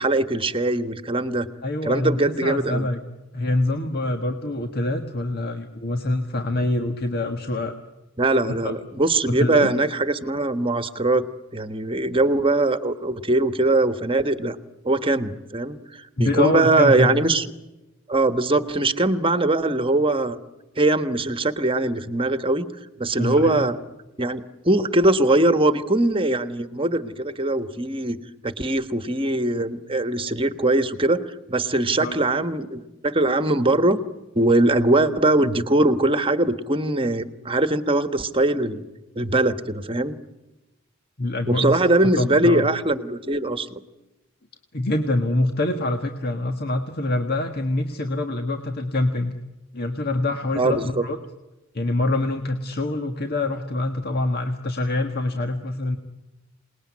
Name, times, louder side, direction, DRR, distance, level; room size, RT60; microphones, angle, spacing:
voice 1, 0.0-1.5 1.8-2.9 8.2-11.2 11.5-14.6 14.8-17.5 18.1-20.4 20.8-22.7 23.0-23.8 24.2-28.2 28.4-31.2 31.5-34.0 34.3-38.8 39.1-40.1 41.5-43.8 50.6-51.0, right 2 dB, 25° right, 10 dB, 1.4 m, -21 dB
voice 2, 1.6-3.0 3.3-7.7 8.6-8.7 9.3-9.7 16.2-17.2 23.2-23.7 32.0-32.2 41.2-41.8 42.2-42.7 44.7-49.3 49.7-51.2 51.7-56.0, left 2 dB, 50° left, 5 dB, 1.7 m, -25 dB
27.5 x 20.0 x 9.7 m, 1.0 s
head